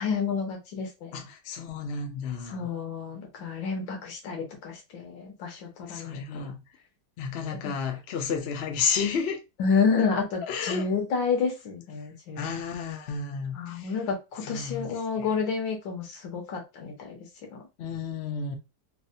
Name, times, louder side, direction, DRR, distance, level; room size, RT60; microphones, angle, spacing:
voice 1, 0.0-1.2 2.5-6.5 7.6-7.7 9.6-12.5 13.5-17.2 17.5-17.6, left 5 dB, 90° left, 1.7 m, -29 dB
voice 2, 1.1-2.7 5.9-6.6 7.2-9.4 10.4-10.8 12.4-13.9 14.4-14.9 17.8-18.6, left 6 dB, 65° left, 0.6 m, -31 dB
4.0 x 2.1 x 2.6 m
omnidirectional pair, 2.0 m